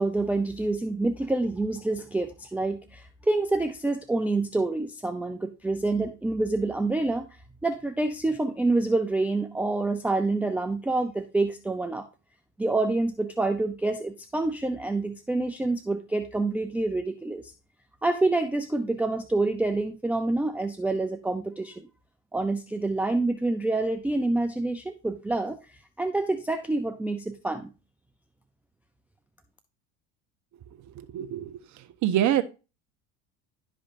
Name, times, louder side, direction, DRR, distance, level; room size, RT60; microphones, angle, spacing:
voice 1, 0.0-7.3 7.6-12.0 12.6-17.5 18.0-21.9 22.3-25.6 26.0-27.7, right 2 dB, 5° right, 8 dB, 0.5 m, -27 dB
voice 2, 30.9-31.6 32.0-32.4, right 11 dB, 45° right, 10 dB, 1.0 m, -25 dB
11.5 x 5.0 x 2.5 m, 0.30 s
supercardioid pair, 100°, 40 cm